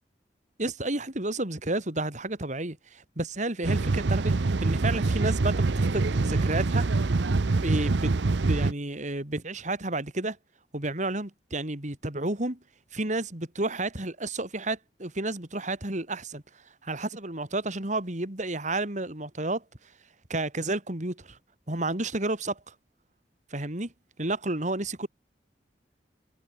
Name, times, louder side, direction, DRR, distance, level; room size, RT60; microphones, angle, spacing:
voice 1, 0.6-4.3 4.6-6.9 7.6-8.1 8.4-10.4 10.7-12.6 12.9-16.4 16.8-19.6 20.3-21.4 21.7-22.7 23.5-23.9 24.2-25.1, right 2 dB, 45° right, 3.0 m, -31 dB
sound 1, 3.6-8.7, right 3 dB, 85° right, 0.7 m, -25 dB
head